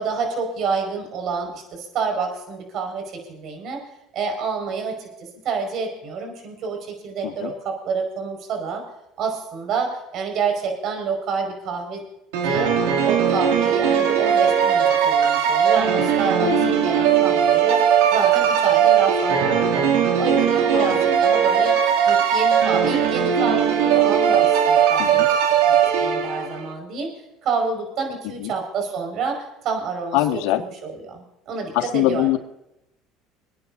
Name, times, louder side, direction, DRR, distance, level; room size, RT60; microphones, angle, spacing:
voice 1, 0.0-3.8 4.1-5.1 5.4-8.8 9.2-12.0 12.4-12.7 13.0-17.8 18.1-19.9 20.2-21.8 22.1-25.2 25.7-27.1 27.4-32.3, right 5 dB, 55° right, 4 dB, 5.2 m, -28 dB
sound 1, 12.3-26.6, right 8 dB, 85° right, 2.4 m, -19 dB
voice 2, 16.4-17.0 20.7-21.2 25.0-25.3 28.2-28.5 30.1-30.6 31.7-32.4, left 14 dB, 75° left, 4 dB, 1.9 m, -24 dB
28.0 x 9.9 x 2.7 m, 0.86 s
supercardioid pair, 95°, 0 cm